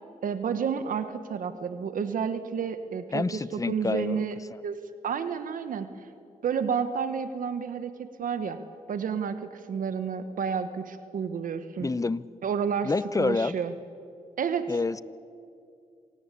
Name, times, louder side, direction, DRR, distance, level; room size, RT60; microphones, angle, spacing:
voice 1, 0.2-4.3 4.6-5.9 6.4-8.6 8.9-11.9 12.4-12.9 13.2-13.7 14.4-14.7, right 7 dB, 80° right, 10 dB, 1.3 m, -30 dB
voice 2, 3.1-4.2 4.5-4.6 11.8-12.2 12.8-13.6 14.7-15.0, left 3 dB, 25° left, 18 dB, 0.7 m, -28 dB
26.5 x 18.0 x 8.4 m, 2.4 s
cardioid pair, 60°, 14 cm